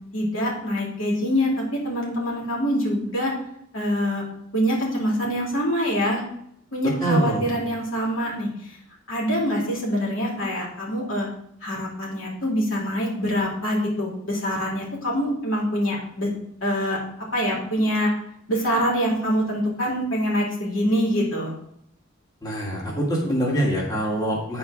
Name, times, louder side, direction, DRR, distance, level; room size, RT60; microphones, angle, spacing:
voice 1, 0.1-3.3 3.7-4.2 4.5-6.2 6.7-8.5 9.1-11.3 11.6-16.3 16.6-17.0 17.3-18.1 18.5-21.5, equal, 85° left, -3 dB, 2.8 m, -25 dB
voice 2, 7.0-7.4 22.4-24.6, right 1 dB, 20° left, -3 dB, 1.9 m, -24 dB
9.6 x 4.6 x 4.8 m, 0.73 s
head